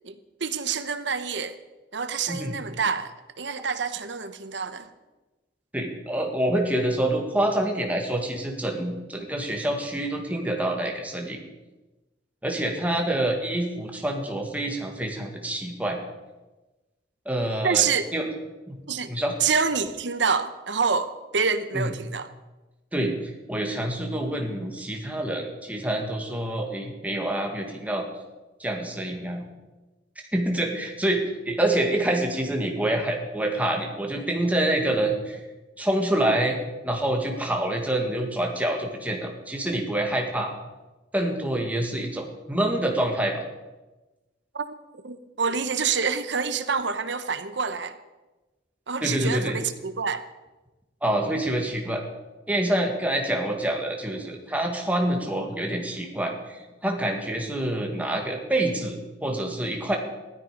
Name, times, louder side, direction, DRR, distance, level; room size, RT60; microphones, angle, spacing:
voice 1, 0.0-1.6 1.9-4.9 17.6-18.1 18.9-19.1 19.4-22.3 44.5-44.7 45.0-48.0 48.9-50.2, right 5 dB, 70° right, 10 dB, 1.0 m, -27 dB
voice 2, 5.7-11.4 12.4-16.0 17.3-17.9 18.1-18.3 18.7-18.8 19.1-19.3 21.7-21.9 22.9-28.0 28.6-29.5 30.3-35.4 35.8-36.6 36.8-40.5 41.1-43.4 49.0-49.6 51.0-52.0 52.5-60.0, right 1 dB, 10° right, 1 dB, 2.0 m, -26 dB
16.0 x 13.0 x 5.3 m, 1.1 s
head